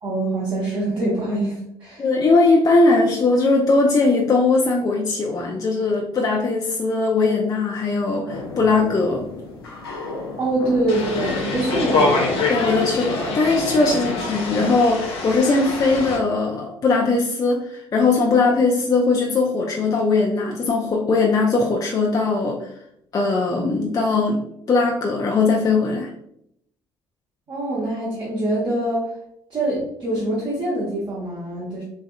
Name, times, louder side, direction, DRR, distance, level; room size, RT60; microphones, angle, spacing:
voice 1, 0.0-2.0 10.3-12.4 27.5-29.1 29.5-31.8, right 1 dB, 40° right, -7 dB, 1.2 m, -24 dB
voice 2, 2.0-9.3 12.5-22.7 23.1-26.1, left 3 dB, 30° left, 0 dB, 0.5 m, -20 dB
sound 1, 8.3-14.8, left 3 dB, 80° left, 0.6 m, -32 dB
sound 2, 10.9-16.2, left 3 dB, 50° left, 0.8 m, -25 dB
3.5 x 3.2 x 2.3 m, 0.76 s
figure-of-eight pair, 50°, 13 cm